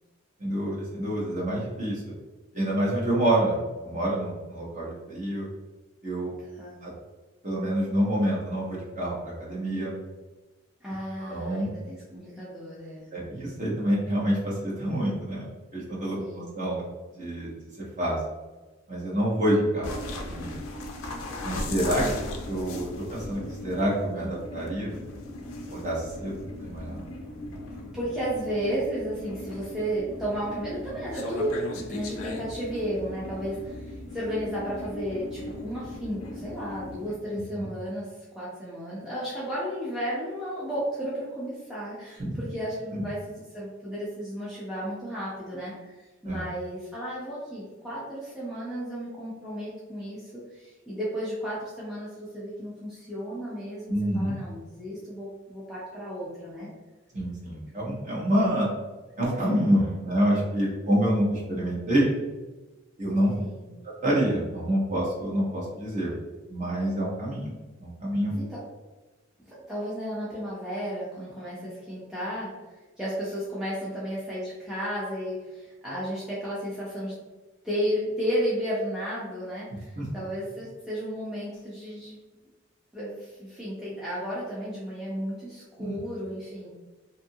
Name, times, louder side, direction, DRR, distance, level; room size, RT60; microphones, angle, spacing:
voice 1, 0.4-2.1 2.5-5.5 6.0-6.3 6.8-6.9 7.4-9.9 11.2-11.7 13.1-15.4 15.7-16.8 17.2-17.5 18.0-18.2 18.9-20.6 21.4-24.9 25.7-27.0 37.3-37.7 42.2-42.4 42.9-43.0 46.2-46.4 53.9-54.3 57.1-58.7 59.2-62.1 63.0-63.3 64.0-66.1 66.5-67.5 67.8-68.4 80.0-80.1 85.8-86.0, right 1 dB, 35° right, -6 dB, 0.9 m, -27 dB
voice 2, 10.8-13.1 16.2-16.5 21.7-22.1 24.2-24.3 27.9-56.7 63.4-63.7 68.4-68.6 69.5-72.5 73.0-77.1 77.6-82.2 82.9-86.7, equal, 5° right, -9 dB, 0.5 m, -33 dB
sound 1, 19.8-37.1, left 2 dB, 85° left, 0.4 m, -38 dB
2.7 x 2.5 x 2.6 m, 1.2 s
head